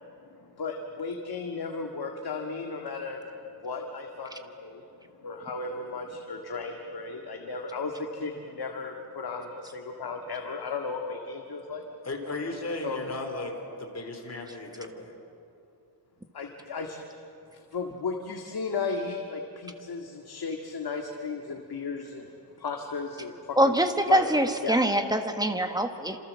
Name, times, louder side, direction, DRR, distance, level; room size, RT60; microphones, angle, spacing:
voice 1, 0.3-3.2 3.6-4.8 5.2-11.8 12.8-13.1 16.3-17.0 17.7-22.3 22.6-23.7 24.1-24.2 24.6-24.8, left 4 dB, 60° left, 2 dB, 2.0 m, -35 dB
voice 2, 12.0-15.1, left 2 dB, 35° left, 3 dB, 3.8 m, -36 dB
voice 3, 23.6-26.2, right 1 dB, 10° right, 6 dB, 1.4 m, -24 dB
28.0 x 27.5 x 7.6 m, 2.8 s
wide cardioid pair, 155°, 42 cm